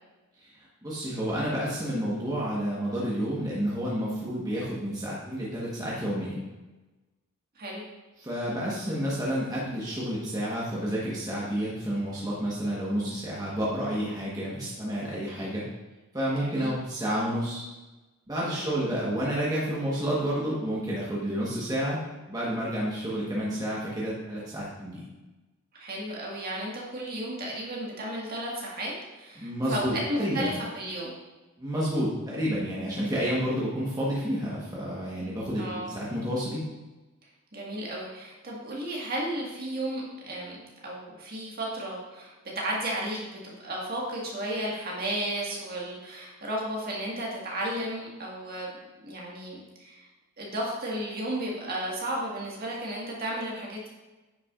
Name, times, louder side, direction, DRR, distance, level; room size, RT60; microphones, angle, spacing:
voice 1, 0.8-6.4 8.2-15.6 16.1-17.6 18.3-25.1 29.4-30.5 31.6-36.6, equal, 15° right, -6 dB, 1.2 m, -30 dB
voice 2, 16.4-16.7 18.4-18.8 25.7-31.1 35.6-35.9 37.5-40.6 40.8-48.7 49.0-50.1 50.4-53.9, right 1 dB, 45° right, -3 dB, 1.7 m, -34 dB
9.5 x 5.8 x 2.5 m, 1.1 s
head